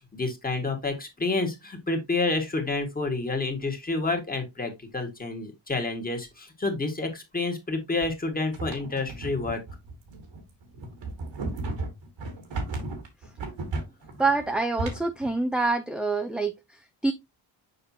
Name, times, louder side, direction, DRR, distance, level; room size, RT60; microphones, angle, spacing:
voice 1, 0.1-9.6, left 3 dB, 20° left, 1.6 m, -29 dB
sound 1, 8.5-15.3, right 2 dB, 85° right, 2.3 m, -34 dB
voice 2, 14.2-17.1, right 3 dB, ahead, 0.4 m, -26 dB
6.7 x 5.3 x 2.7 m
cardioid pair, 125°, 43 cm